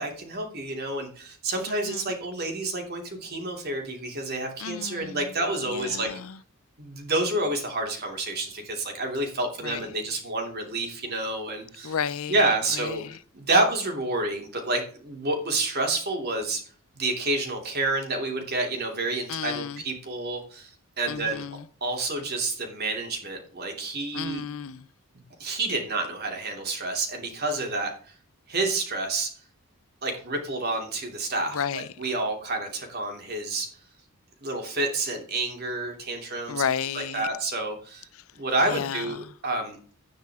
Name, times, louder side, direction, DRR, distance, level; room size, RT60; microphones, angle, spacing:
voice 1, 0.0-6.1 6.8-12.0 12.3-13.0 13.3-16.6 16.9-21.4 21.8-24.4 25.4-27.9 28.5-29.3 30.0-33.7 34.4-36.6 36.9-38.1 38.3-39.2 39.4-39.8, right 2 dB, 45° right, 3.0 m, -29 dB
voice 2, 1.7-2.0 4.6-5.2 5.7-6.2 9.6-9.8 11.8-12.3 19.3-19.8 21.1-21.6 24.1-24.8 31.5-31.9 36.5-37.3 38.7-39.0, left 7 dB, 75° left, 0.6 m, -31 dB
10.5 x 9.4 x 3.6 m
head